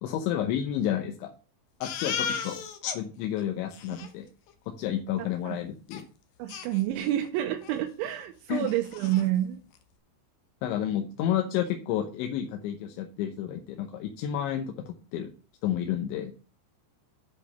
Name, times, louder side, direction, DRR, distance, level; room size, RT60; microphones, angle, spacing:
voice 1, 0.0-1.3 1.8-2.6 2.9-4.3 4.8-6.0 8.5-8.7 10.6-15.3 15.6-16.3, left 10 dB, 90° left, 4 dB, 3.3 m, -30 dB
Crying sobbing, 1.8-3.0 3.4-3.5 3.7-4.1 5.9-6.0 6.5-7.3 7.6-7.8 8.1-8.2 8.6-9.3, left 7 dB, 70° left, 2.2 m, -35 dB
voice 2, 5.2-5.6 6.4-9.6, right 13 dB, 90° right, 4 dB, 3.3 m, -29 dB
8.7 x 5.1 x 7.2 m, 0.38 s
omnidirectional pair, 5.2 m